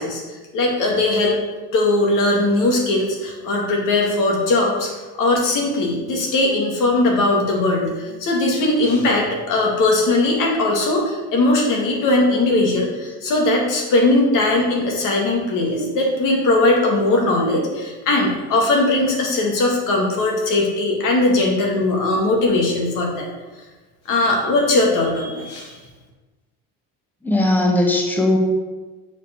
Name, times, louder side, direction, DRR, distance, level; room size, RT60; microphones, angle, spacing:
voice 1, 0.0-1.4 1.7-23.3 24.1-25.8, left 2 dB, 60° left, 0 dB, 2.0 m, -19 dB
voice 2, 27.2-28.4, left 1 dB, 5° left, 0 dB, 1.1 m, -18 dB
6.7 x 4.8 x 4.4 m, 1.2 s
supercardioid pair, 110°, 35 cm